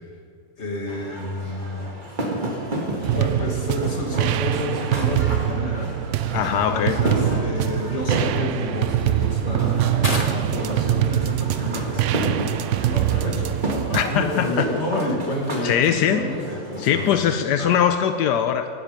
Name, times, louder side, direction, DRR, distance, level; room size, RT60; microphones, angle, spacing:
voice 1, 0.6-1.9 2.9-5.9 6.5-17.1 17.6-17.7, left 1 dB, 40° left, 0 dB, 2.5 m, -30 dB
sound 1, 0.9-17.4, right 1 dB, 30° right, 1.8 m, -31 dB
sound 2, 3.0-14.0, right 12 dB, 75° right, 0.6 m, -24 dB
voice 2, 6.3-7.0 13.9-14.7 15.6-16.2 16.8-18.7, left 9 dB, 80° left, 8 dB, 1.3 m, -21 dB
sound 3, 6.8-14.9, left 2 dB, 25° left, 1.5 m, -39 dB
17.5 x 12.0 x 5.3 m, 2.3 s
omnidirectional pair, 1.8 m